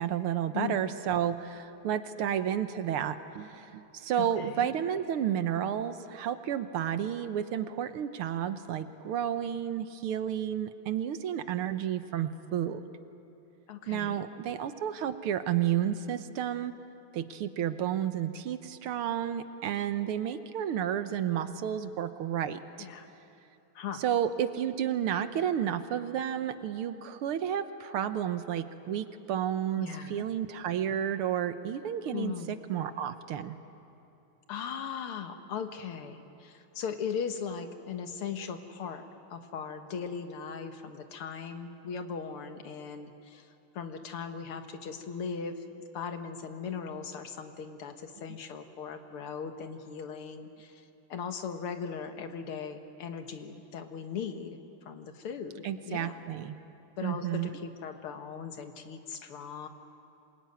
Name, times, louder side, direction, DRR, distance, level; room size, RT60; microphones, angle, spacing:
voice 1, 0.0-12.8 13.9-16.7 17.1-22.9 24.0-33.6 55.6-56.6 57.0-57.5, right 10 dB, 90° right, 10 dB, 1.9 m, -31 dB
voice 2, 0.5-0.9 4.2-4.7 13.7-14.2 22.8-23.1 23.8-24.0 29.8-30.2 32.1-32.6 34.5-45.6 45.9-54.6 54.9-56.2 57.0-59.7, left 6 dB, 90° left, 7 dB, 2.3 m, -38 dB
26.5 x 21.5 x 9.5 m, 2.8 s
omnidirectional pair, 2.4 m